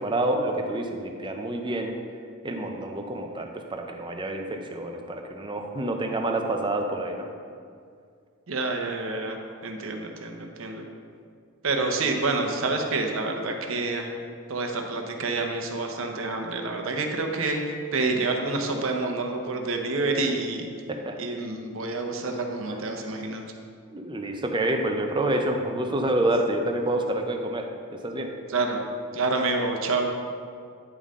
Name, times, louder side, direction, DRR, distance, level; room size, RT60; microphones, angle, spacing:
voice 1, 0.0-2.0 2.4-7.3 20.9-21.2 22.7-22.8 23.9-27.7 27.9-28.3, right 1 dB, 20° right, 3 dB, 0.6 m, -28 dB
voice 2, 8.5-9.4 9.6-10.8 11.6-14.1 14.5-20.7 21.2-23.4 28.5-28.8 29.1-30.1, right 3 dB, 65° right, 3 dB, 0.9 m, -28 dB
9.7 x 5.5 x 3.7 m, 2.2 s
head